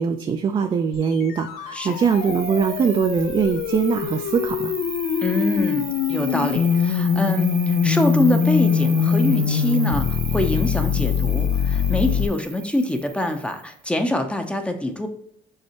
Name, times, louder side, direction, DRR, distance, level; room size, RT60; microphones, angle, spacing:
voice 1, 0.0-4.7, right 6 dB, 30° right, 5 dB, 0.4 m, -22 dB
sound 1, 0.9-12.3, left 7 dB, 75° left, 0.4 m, -23 dB
Cricket, 1.8-13.8, right 8 dB, 60° right, 1.0 m, -37 dB
voice 2, 5.2-15.1, left 1 dB, 5° left, 5 dB, 0.7 m, -25 dB
5.5 x 3.3 x 2.9 m, 0.77 s
supercardioid pair, 95°, 16 cm